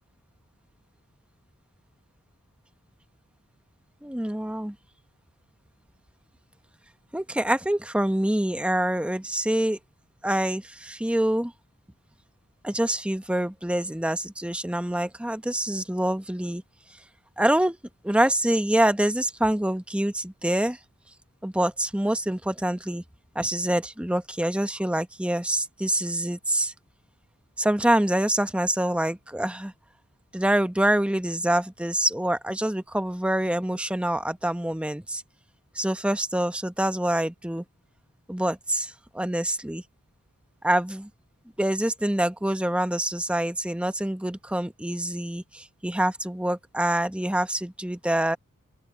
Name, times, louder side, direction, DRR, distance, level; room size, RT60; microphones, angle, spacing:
voice 1, 4.0-4.8 7.1-9.8 10.2-11.5 12.6-16.6 17.4-17.8 18.0-20.8 21.4-23.0 23.3-26.7 27.6-29.7 30.3-35.2 35.7-37.6 38.3-39.8 40.6-41.1 41.6-48.4, right 1 dB, 5° right, 0.9 m, -26 dB
open air
head